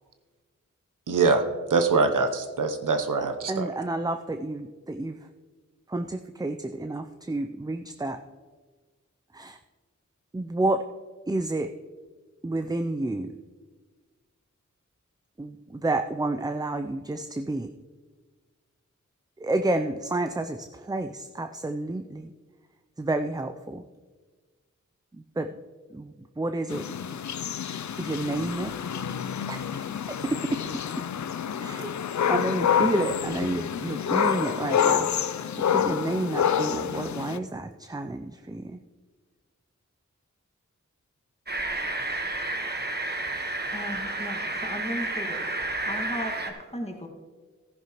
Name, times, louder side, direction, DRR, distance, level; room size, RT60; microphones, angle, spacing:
voice 1, 1.1-1.4 1.7-3.7, right 4 dB, 90° right, 7 dB, 0.8 m, -23 dB
voice 2, 3.5-5.2 5.9-8.2 9.3-9.6 10.3-10.8 11.3-11.7 12.4-13.4 15.4-17.7 19.4-22.3 23.0-23.8 25.1-25.5 25.9-26.9 27.9-28.7 29.5-30.6 31.6-31.9 32.3-35.1 35.7-38.8, right 2 dB, 15° right, 7 dB, 0.4 m, -30 dB
sound 1, 26.7-37.4, left 8 dB, 65° left, 0.5 m, -28 dB
sound 2, 41.5-46.5, right 2 dB, 35° right, 1.3 m, -31 dB
voice 3, 43.7-45.5 45.8-47.1, left 1 dB, 20° left, 2 dB, 1.8 m, -36 dB
14.0 x 10.5 x 3.0 m, 1.4 s
wide cardioid pair, 50°, 31 cm